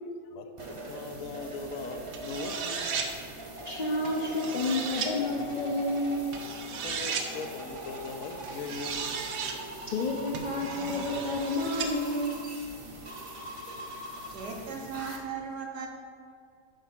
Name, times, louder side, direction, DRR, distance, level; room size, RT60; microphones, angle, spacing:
voice 1, 0.3-3.0 6.8-9.3, left 4 dB, 80° left, 6 dB, 1.0 m, -40 dB
sound 1, 0.6-15.2, right 1 dB, 35° right, 0.5 m, -41 dB
sound 2, 2.1-3.1 4.0-5.1 6.3-7.3 8.4-9.6 10.3-11.9, right 6 dB, 85° right, 1.1 m, -35 dB
voice 2, 3.7-6.2 9.9-12.4, left 2 dB, 55° left, -3 dB, 0.5 m, -30 dB
voice 3, 14.3-15.9, right 5 dB, 60° right, 1 dB, 0.9 m, -37 dB
5.1 x 4.5 x 5.8 m, 2.3 s
omnidirectional pair, 1.4 m